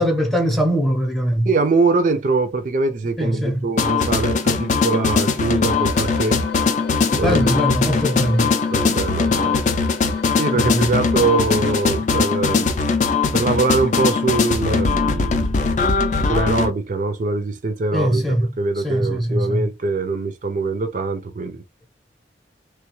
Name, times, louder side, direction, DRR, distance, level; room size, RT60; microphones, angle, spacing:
voice 1, 0.0-1.5 3.2-3.7 7.1-8.5 10.5-11.0 17.9-19.7, equal, ahead, 0.7 m, -21 dB
voice 2, 1.5-6.4 7.2-7.6 8.7-9.6 10.4-12.7 13.3-15.6 16.3-18.2 18.6-21.6, right 3 dB, 45° right, 0.4 m, -22 dB
sound 1, 3.8-16.7, left 4 dB, 40° left, 0.4 m, -20 dB
sound 2, 5.7-12.0, left 7 dB, 80° left, 0.7 m, -34 dB
3.2 x 2.2 x 3.0 m
head